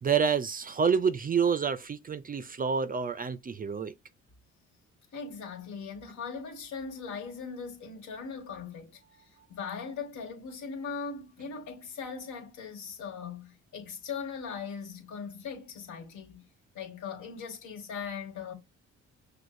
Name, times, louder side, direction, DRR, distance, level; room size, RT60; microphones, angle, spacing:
voice 1, 0.0-3.9, right 6 dB, 30° right, 0.4 m, -28 dB
voice 2, 5.1-9.0 9.5-16.4 16.7-18.5, left 5 dB, 80° left, 1.9 m, -39 dB
6.1 x 2.6 x 2.6 m
cardioid pair, 90°, 30 cm